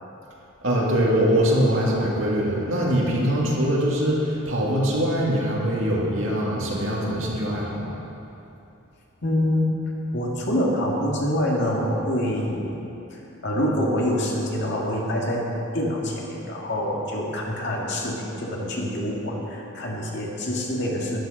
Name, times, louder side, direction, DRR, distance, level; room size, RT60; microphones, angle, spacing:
voice 1, 0.6-7.9, equal, 60° right, -4 dB, 2.6 m, -23 dB
voice 2, 9.2-9.7 10.1-12.8 13.1-21.2, equal, 55° left, -3 dB, 2.2 m, -26 dB
12.5 x 11.5 x 5.3 m, 2.9 s
head